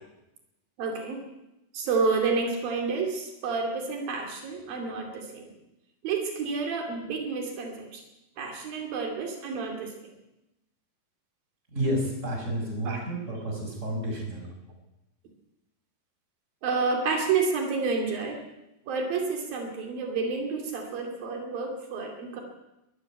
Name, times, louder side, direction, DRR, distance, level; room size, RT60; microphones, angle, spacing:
voice 1, 0.8-1.2 1.7-5.4 6.0-8.0 8.4-10.1 12.9-13.0 16.6-18.4 18.9-22.4, right 4 dB, 80° right, 3 dB, 4.4 m, -29 dB
voice 2, 11.7-14.5, right 1 dB, 20° right, 1 dB, 6.1 m, -30 dB
21.5 x 14.5 x 9.2 m, 0.93 s
omnidirectional pair, 4.0 m